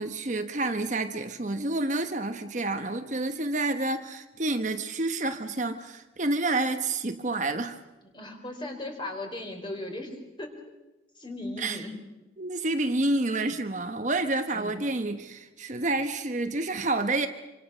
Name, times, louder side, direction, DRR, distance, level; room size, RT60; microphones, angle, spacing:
voice 1, 0.0-7.8 11.6-11.8 12.4-17.3, right 2 dB, 40° right, 7 dB, 1.2 m, -29 dB
voice 2, 8.0-10.5 11.2-12.0 14.5-14.8, left 1 dB, 25° left, 3 dB, 4.0 m, -37 dB
26.5 x 25.5 x 6.3 m, 1.0 s
head